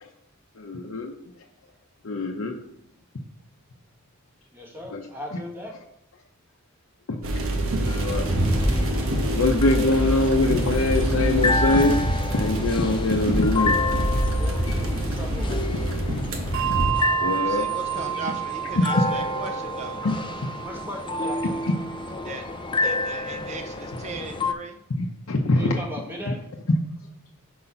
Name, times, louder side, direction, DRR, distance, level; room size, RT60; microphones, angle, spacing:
voice 1, 0.6-1.1 2.0-2.6 4.9-5.0 7.1-7.2 8.0-8.3 9.3-12.0 12.3-13.8 17.2-17.7 18.8-19.0 20.0-20.1 25.0-25.8, left 2 dB, 75° left, 1 dB, 0.6 m, -23 dB
voice 2, 4.5-5.7 14.3-15.9 20.6-21.6 25.5-26.4, left 1 dB, 10° right, -1 dB, 1.3 m, -37 dB
sound 1, 7.2-16.9, right 1 dB, 80° right, 1.1 m, -25 dB
sound 2, 7.9-24.5, left 2 dB, 25° left, 0.3 m, -30 dB
Bell, 16.5-23.4, right 12 dB, 65° right, 0.8 m, -31 dB
voice 3, 17.4-20.0 22.2-22.4 22.8-24.8, right 3 dB, 35° right, 5 dB, 0.5 m, -37 dB
4.7 x 4.0 x 5.6 m, 0.74 s
head